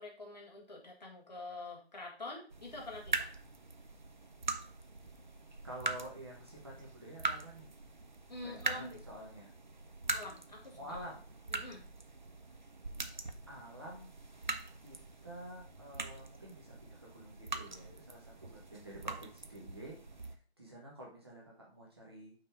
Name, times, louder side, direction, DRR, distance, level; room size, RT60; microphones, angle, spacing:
voice 1, 0.0-3.3 8.3-9.0 10.1-10.8 11.5-11.8, left 2 dB, 40° left, -2 dB, 1.8 m, -46 dB
sound 1, 2.5-20.4, right 3 dB, 45° right, 0.5 m, -42 dB
voice 2, 5.6-7.7 8.4-9.5 10.7-11.3 13.5-14.1 14.8-15.0 15.2-22.3, right 1 dB, 25° right, -3 dB, 1.2 m, -49 dB
5.6 x 4.1 x 4.9 m, 0.38 s
figure-of-eight pair, 175°, 32 cm